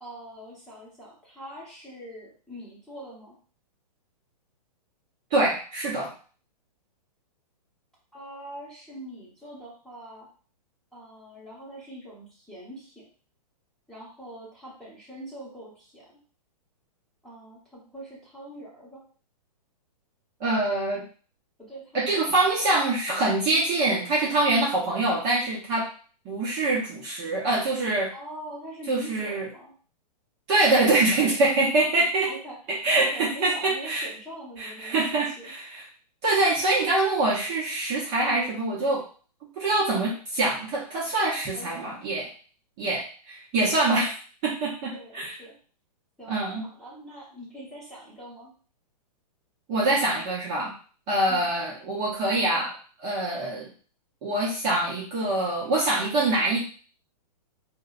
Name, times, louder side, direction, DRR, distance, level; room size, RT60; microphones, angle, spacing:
voice 1, 0.0-3.4 8.1-10.3 10.9-13.0 13.9-16.1 17.2-19.0 21.6-22.2 22.7-22.8 28.1-29.7 32.2-32.6 32.9-35.5 41.5-42.0 44.9-45.5 46.2-46.3 46.8-48.5 51.3-51.4, right 1 dB, ahead, -8 dB, 1.0 m, -43 dB
voice 2, 5.3-6.1 20.4-21.0 21.9-25.9 26.2-28.1 28.9-29.5 30.5-32.3 32.7-34.1 34.6-35.9 36.2-39.1 39.6-42.3 42.8-44.2 44.4-45.3 46.3-46.7 49.7-50.7 51.1-53.7 54.2-56.6, right 2 dB, 30° right, -6 dB, 0.7 m, -24 dB
2.5 x 2.1 x 2.4 m, 0.40 s
hypercardioid pair, 140°, 21 cm